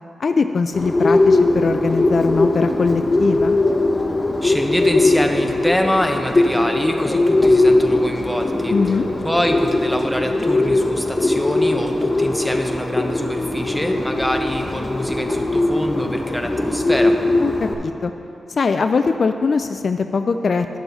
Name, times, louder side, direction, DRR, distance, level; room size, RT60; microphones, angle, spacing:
voice 1, 0.2-3.6 8.7-9.1 17.4-18.1 18.5-20.8, left 4 dB, 60° left, 8 dB, 0.3 m, -21 dB
Bird, 0.7-17.7, left 2 dB, 30° left, 1.2 m, -19 dB
voice 2, 4.4-8.8 9.2-17.2, equal, 5° left, 3 dB, 1.0 m, -25 dB
11.5 x 6.9 x 4.1 m, 2.6 s
cardioid pair, 50°, 0 cm